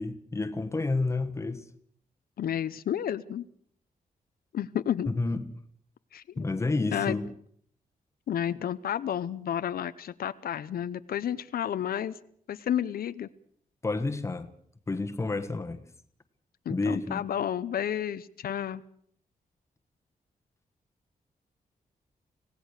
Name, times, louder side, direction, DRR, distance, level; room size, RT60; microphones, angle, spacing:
voice 1, 0.0-1.6 5.1-5.5 6.4-7.3 13.8-14.5 14.9-15.8 16.7-17.2, left 3 dB, 20° left, 1.4 m, -30 dB
voice 2, 2.4-3.4 4.5-5.1 6.1-6.5 6.9-7.2 8.3-12.1 12.5-13.3 16.7-18.8, left 10 dB, 80° left, 0.8 m, -31 dB
25.5 x 17.0 x 6.6 m
wide cardioid pair, 165°, 15 cm